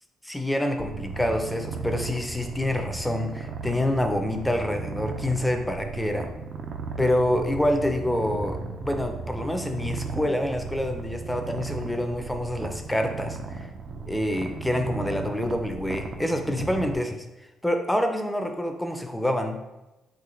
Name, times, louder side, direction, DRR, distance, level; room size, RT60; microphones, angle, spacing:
voice 1, 0.2-6.3 7.0-13.7 14.1-17.2 17.6-19.6, left 1 dB, 5° left, 5 dB, 0.5 m, -27 dB
Purr, 0.8-17.0, right 4 dB, 55° right, 0.5 m, -36 dB
3.9 x 2.8 x 4.4 m, 1.0 s
cardioid pair, 90°, 0 cm